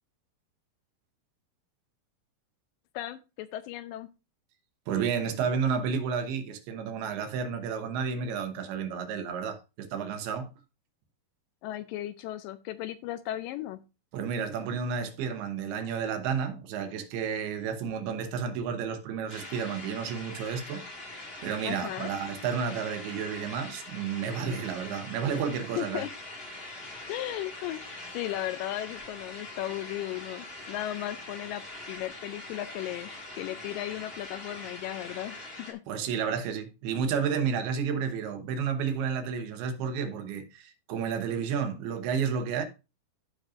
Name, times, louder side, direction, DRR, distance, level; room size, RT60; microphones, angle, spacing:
voice 1, 2.9-4.1 11.6-13.8 21.6-22.1 25.8-26.1 27.1-33.1 33.4-35.8, left 14 dB, 85° left, 2.0 m, -36 dB
voice 2, 4.9-10.5 14.1-20.8 21.4-26.1 35.9-42.7, right 6 dB, 90° right, 3.0 m, -31 dB
sound 1, 19.3-35.7, left 2 dB, 50° left, 0.7 m, -43 dB
14.5 x 5.0 x 2.5 m
omnidirectional pair, 4.4 m